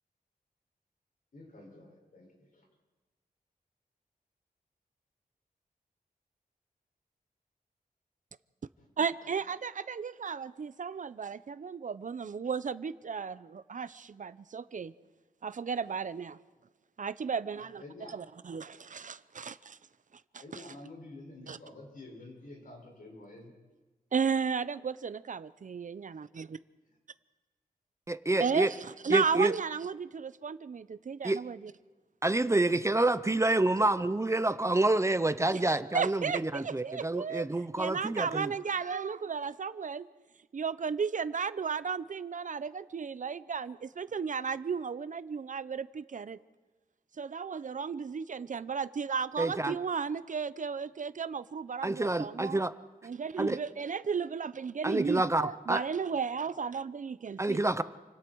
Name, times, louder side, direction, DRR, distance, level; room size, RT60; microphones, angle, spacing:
voice 1, 1.3-2.7 8.8-8.9 17.8-18.2 20.4-23.5 28.6-28.9, left 2 dB, 65° left, 0 dB, 6.7 m, -49 dB
voice 2, 9.0-14.9 15.4-16.4 17.0-17.8 18.1-19.8 21.5-21.6 24.1-26.5 28.4-28.7 29.0-31.7 35.5-35.6 35.9-37.5 37.8-40.1 40.5-46.4 47.2-52.6 53.0-57.6, right 6 dB, 60° right, 15 dB, 0.7 m, -34 dB
voice 3, 28.1-28.7 29.1-29.5 31.2-31.4 32.2-38.5 49.4-49.8 51.8-52.7 53.4-53.6 54.8-55.8 57.4-57.8, right 2 dB, 20° right, 13 dB, 0.7 m, -28 dB
28.5 x 25.5 x 4.7 m, 1.2 s
wide cardioid pair, 110°, 15 cm